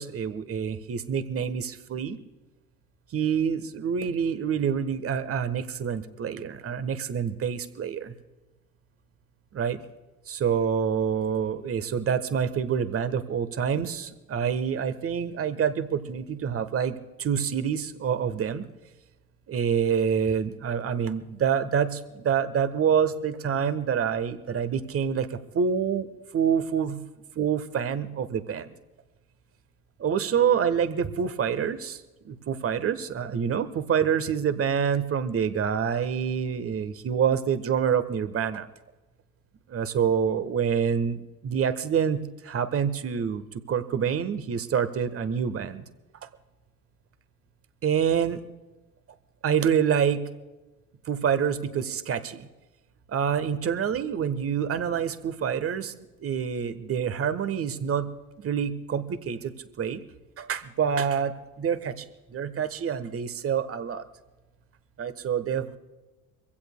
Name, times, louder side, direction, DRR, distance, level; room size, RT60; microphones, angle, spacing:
voice 1, 0.0-2.2 3.1-8.1 9.5-9.8 10.3-18.6 19.5-27.0 27.4-28.7 30.0-32.0 32.2-38.7 39.7-45.8 47.8-48.4 49.4-50.2 51.1-52.5 53.1-58.1 58.4-60.0 60.4-62.0 62.3-64.0 65.0-65.8, right 7 dB, 30° right, 12 dB, 1.3 m, -27 dB
25.0 x 16.0 x 2.3 m, 1.1 s
figure-of-eight pair, 65°, 44 cm